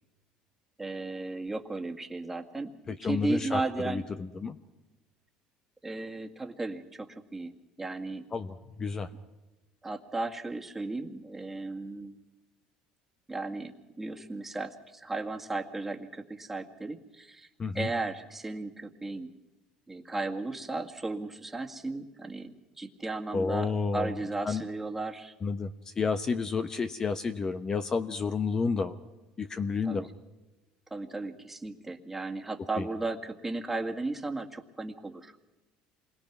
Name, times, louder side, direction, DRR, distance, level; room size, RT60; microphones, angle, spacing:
voice 1, 0.8-2.7 3.0-4.0 5.8-7.5 7.8-8.2 9.8-12.2 13.3-17.5 17.7-19.3 19.9-25.3 29.8-30.1 30.9-35.5, right 2 dB, 10° right, 3 dB, 2.0 m, -35 dB
voice 2, 2.9-4.6 8.3-9.1 17.6-17.9 23.3-24.1 24.4-24.6 25.4-29.0 29.4-30.1 32.8-32.9, left 5 dB, 30° left, 9 dB, 0.9 m, -31 dB
27.0 x 21.5 x 6.1 m, 1.1 s
supercardioid pair, 100°, 2 cm